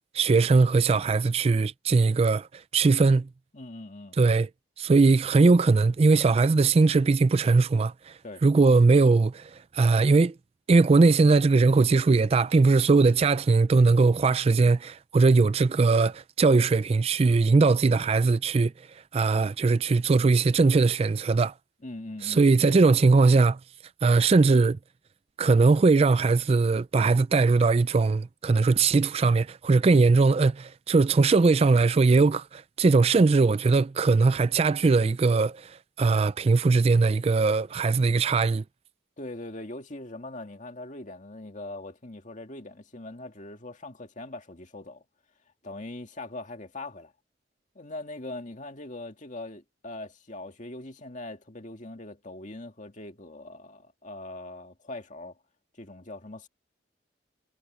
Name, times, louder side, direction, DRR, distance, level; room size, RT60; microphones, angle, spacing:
voice 1, 0.1-3.3 4.2-4.5 4.8-10.3 10.7-18.7 19.1-21.5 22.2-23.6 24.0-24.8 25.4-38.6, right 3 dB, 35° right, 0.3 m, -20 dB
voice 2, 3.5-4.2 8.2-8.4 21.8-22.8 39.2-45.0 45.6-47.1 47.8-55.3 55.8-56.5, left 2 dB, 40° left, 2.2 m, -41 dB
head